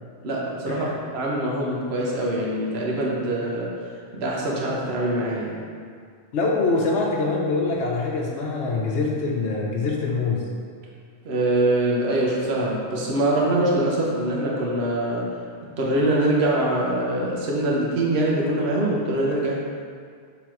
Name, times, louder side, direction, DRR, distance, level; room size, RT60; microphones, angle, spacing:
voice 1, 0.2-3.7 4.1-5.6 11.2-15.3 15.8-19.6, right 1 dB, 70° right, -3 dB, 1.2 m, -23 dB
voice 2, 6.3-10.4, left 3 dB, 85° left, -2 dB, 1.0 m, -24 dB
6.0 x 3.4 x 4.6 m, 2.1 s
omnidirectional pair, 1.1 m